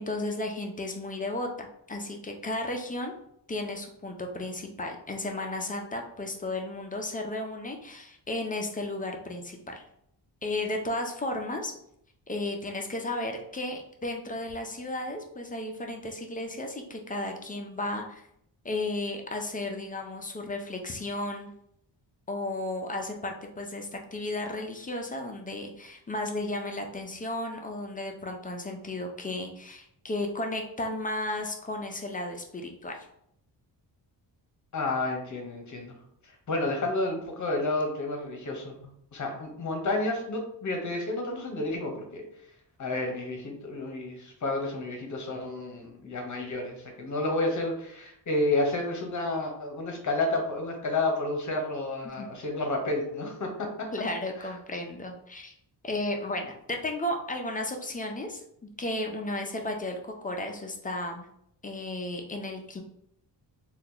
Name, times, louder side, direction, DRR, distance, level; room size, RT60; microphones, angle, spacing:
voice 1, 0.0-3.1 3.5-9.8 10.4-11.7 12.3-18.2 18.6-21.5 22.3-33.0 52.0-52.3 53.9-55.5 55.8-58.4 58.8-61.3 61.6-62.8, left 1 dB, 20° left, 2 dB, 0.4 m, -34 dB
voice 2, 34.7-35.9 36.2-38.7 39.1-42.3 42.8-53.9 54.4-54.5, left 2 dB, 40° left, 2 dB, 0.9 m, -30 dB
2.8 x 2.3 x 3.7 m, 0.71 s
wide cardioid pair, 130°, 44 cm